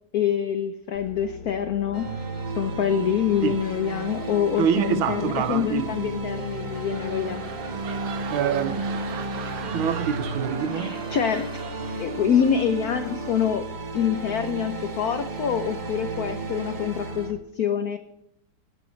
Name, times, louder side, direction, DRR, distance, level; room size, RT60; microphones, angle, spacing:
voice 1, 0.1-2.1 2.6-7.6 10.7-11.6 12.0-13.7 13.9-18.0, left 8 dB, 80° left, 0.8 m, -26 dB
sound 1, 0.9-17.4, left 6 dB, 65° left, 1.9 m, -41 dB
sound 2, 1.9-17.3, right 3 dB, 50° right, 0.5 m, -33 dB
voice 2, 4.6-5.9 8.3-8.9 9.7-11.0, right 8 dB, 75° right, 1.4 m, -25 dB
sound 3, 6.5-12.5 12.8-13.1, right 7 dB, 90° right, 2.1 m, -39 dB
21.5 x 11.0 x 3.2 m
omnidirectional pair, 2.4 m